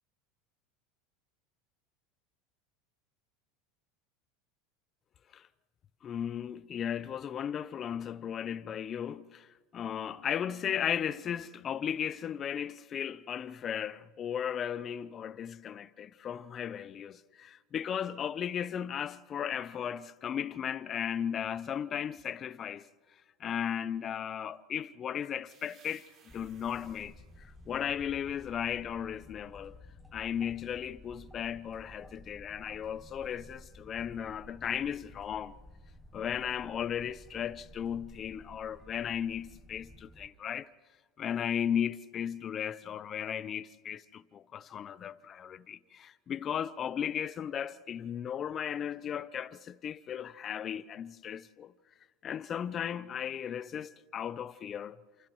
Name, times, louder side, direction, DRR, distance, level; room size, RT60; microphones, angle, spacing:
voice 1, 6.0-9.5 9.7-22.9 23.4-26.1 26.3-27.1 27.7-29.8 30.1-35.5 36.1-40.7 41.2-51.7 52.2-55.0, left 9 dB, 35° left, 0.7 m, -36 dB
sound 1, 25.5-29.1, right 5 dB, 40° right, 4.6 m, -64 dB
sound 2, 26.3-40.3, left 1 dB, 5° left, 1.0 m, -54 dB
29.5 x 28.0 x 3.1 m
supercardioid pair, 110°, 0 cm